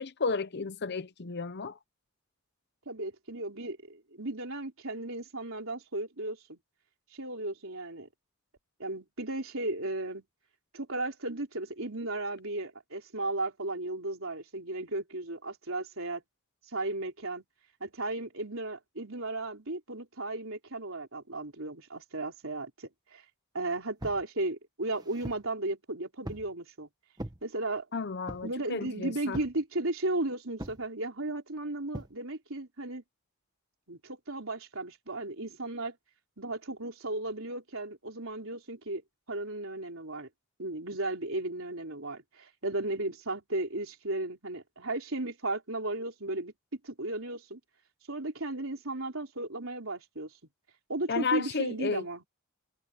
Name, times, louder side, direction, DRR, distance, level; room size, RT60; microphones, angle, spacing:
voice 1, 0.0-1.8 27.9-29.4 51.1-52.1, left 4 dB, 50° left, 0.8 m, -32 dB
voice 2, 2.9-6.6 7.1-8.1 8.8-10.2 10.7-16.2 16.7-17.4 17.8-23.2 23.5-26.9 27.4-27.9 28.4-33.0 33.9-36.0 36.4-39.0 39.3-40.3 40.6-47.6 48.1-50.3 50.9-52.2, right 2 dB, 65° right, 4.5 m, -35 dB
sound 1, 24.0-24.3 24.8-25.5 26.2-26.5 27.2-27.4 28.3-28.6 29.3-29.6 30.6-30.9 31.9-32.2, right 1 dB, 20° right, 1.5 m, -41 dB
head